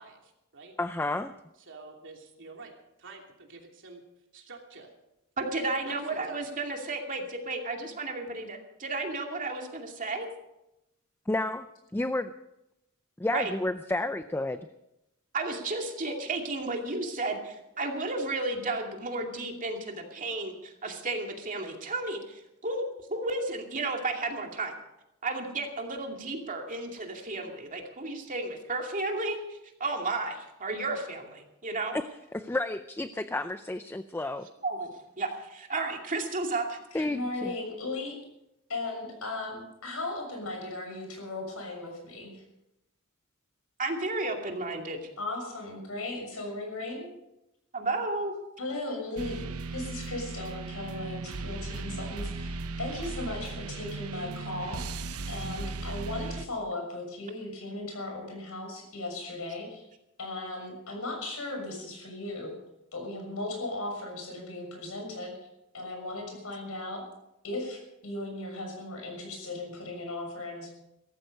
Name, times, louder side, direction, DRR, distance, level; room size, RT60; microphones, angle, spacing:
voice 1, 0.0-0.7 1.6-2.7 3.0-4.0 4.3-4.9 5.8-6.4, right 3 dB, 60° right, 1 dB, 3.0 m, -48 dB
voice 2, 0.8-1.3 11.3-11.7 11.9-12.3 13.2-14.7 31.9-32.0 32.3-34.5 36.9-37.5, left 2 dB, 10° left, 11 dB, 0.5 m, -31 dB
voice 3, 5.4-10.3 13.3-13.5 15.3-22.8 23.1-24.7 25.2-31.9 34.6-36.8 43.8-45.1 47.7-48.3, right 2 dB, 35° right, 2 dB, 2.5 m, -33 dB
voice 4, 36.9-38.1 38.7-42.4 45.2-47.1 48.6-59.8 60.2-62.5 62.9-65.3 65.7-67.0 67.4-70.7, left 2 dB, 70° left, 2 dB, 6.6 m, -37 dB
sound 1, 49.2-56.5, right 3 dB, 75° right, 0.9 m, -37 dB
17.0 x 14.5 x 5.4 m, 0.88 s
head